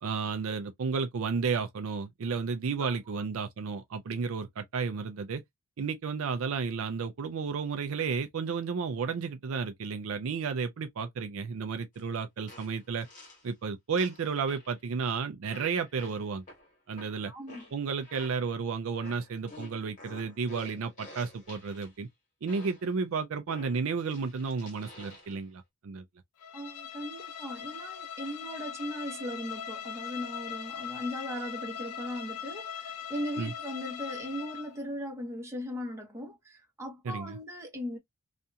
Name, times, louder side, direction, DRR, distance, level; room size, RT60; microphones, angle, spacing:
voice 1, 0.0-5.4 5.8-13.1 13.4-16.4 16.9-17.3 17.7-22.1 22.4-26.0 33.4-33.5 37.1-37.4, right 5 dB, 60° right, 0.4 m, -32 dB
voice 2, 2.8-3.2 17.3-17.6 26.5-38.0, equal, 15° right, 0.9 m, -38 dB
sound 1, 11.9-12.0 12.5-13.5 14.0-14.8 15.5-18.6 19.0-21.9 22.5-22.9 23.5-25.4, left 1 dB, 35° left, 1.4 m, -50 dB
Bowed string instrument, 26.4-34.8, left 8 dB, 85° left, 0.4 m, -40 dB
2.8 x 2.4 x 2.2 m
head